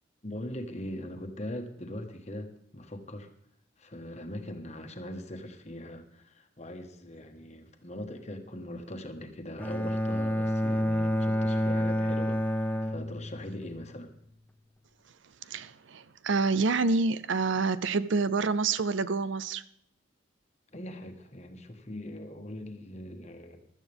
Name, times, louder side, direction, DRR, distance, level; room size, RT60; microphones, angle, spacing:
voice 1, 0.2-3.3 3.8-14.1 20.7-23.6, left 1 dB, 35° left, 5 dB, 1.4 m, -41 dB
Bowed string instrument, 9.6-13.7, equal, 10° left, 0.6 m, -28 dB
voice 2, 15.4-19.6, right 4 dB, 70° right, 15 dB, 0.6 m, -27 dB
16.5 x 12.5 x 3.5 m, 0.74 s
head